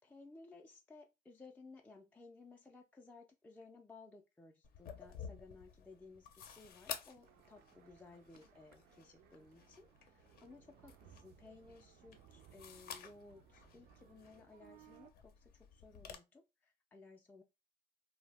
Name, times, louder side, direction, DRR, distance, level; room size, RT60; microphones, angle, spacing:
voice 1, 0.0-17.4, left 3 dB, 10° left, 0.3 m, -58 dB
sound 1, 4.6-16.2, left 7 dB, 65° left, 0.5 m, -53 dB
sound 2, 7.2-15.1, right 10 dB, 75° right, 0.4 m, -64 dB
2.6 x 2.0 x 3.3 m
cardioid pair, 110°, 17 cm